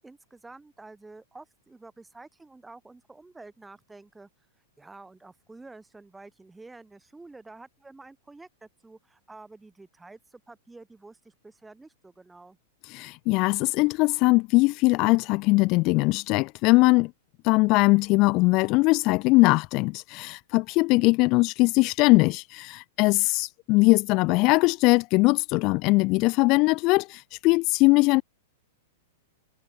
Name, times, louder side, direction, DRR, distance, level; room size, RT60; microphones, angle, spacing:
voice 1, 0.0-4.3 4.8-12.6 23.0-23.3, right 3 dB, 5° right, 4.6 m, -49 dB
voice 2, 12.8-17.1 17.4-28.2, left 24 dB, 25° left, 1.2 m, -21 dB
supercardioid pair, 175°, 0 cm